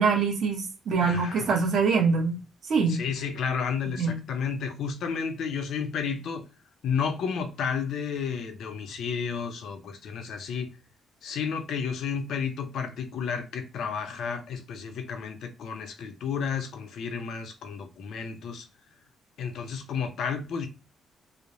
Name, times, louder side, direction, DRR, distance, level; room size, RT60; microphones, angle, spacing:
voice 1, 0.0-2.4 2.7-3.0 4.0-4.2, right 5 dB, 50° right, 0.8 m, -24 dB
voice 2, 1.0-1.6 2.9-6.4 6.8-10.7 11.2-18.7 19.4-20.7, left 6 dB, 60° left, 0.5 m, -32 dB
3.1 x 2.0 x 2.6 m
cardioid pair, 165°, 0 cm